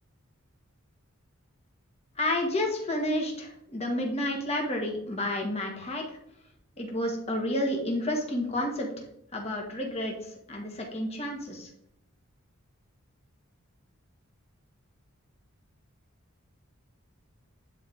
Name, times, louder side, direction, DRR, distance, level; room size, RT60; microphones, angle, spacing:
voice 1, 2.2-6.0 6.8-9.0 9.3-10.1 10.5-11.7, left 1 dB, 30° left, 0 dB, 1.8 m, -30 dB
10.0 x 4.7 x 3.6 m, 0.74 s
head